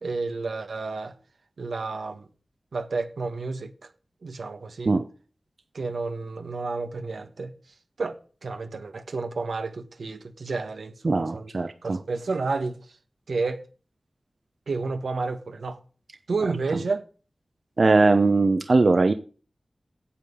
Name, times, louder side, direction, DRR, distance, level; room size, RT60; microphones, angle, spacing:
voice 1, 0.0-1.1 1.6-2.3 2.7-3.9 4.2-4.9 5.7-7.5 8.0-11.5 11.8-12.8 13.3-13.7 14.7-15.8 16.3-17.0, right 3 dB, 90° right, 1.5 m, -31 dB
voice 2, 11.0-12.0 17.8-19.1, right 3 dB, 60° right, 1.0 m, -20 dB
8.9 x 7.7 x 8.5 m
wide cardioid pair, 55°, 0 cm